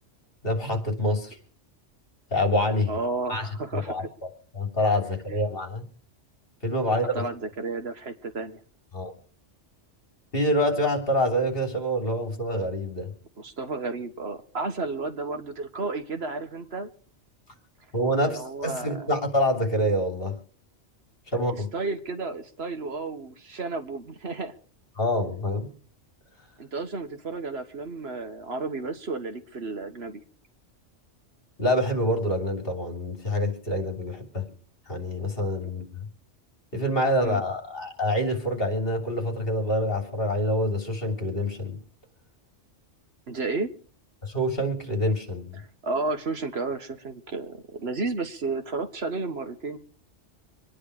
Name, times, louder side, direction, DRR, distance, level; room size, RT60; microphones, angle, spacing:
voice 1, 0.4-1.4 2.3-2.9 3.3-4.0 4.5-5.9 6.6-7.3 8.9-9.1 10.3-13.1 17.9-20.3 21.3-21.7 25.0-25.7 31.6-34.4 34.9-36.0 36.7-41.8 44.2-45.6, equal, 50° left, 4 dB, 3.5 m, -26 dB
voice 2, 2.9-4.1 5.3-5.4 7.1-8.6 13.4-16.9 18.3-19.1 21.7-24.5 26.6-30.2 37.2-37.4 43.3-43.7 45.8-49.8, right 3 dB, 60° right, 7 dB, 1.6 m, -32 dB
25.5 x 10.0 x 4.8 m, 0.43 s
omnidirectional pair, 1.2 m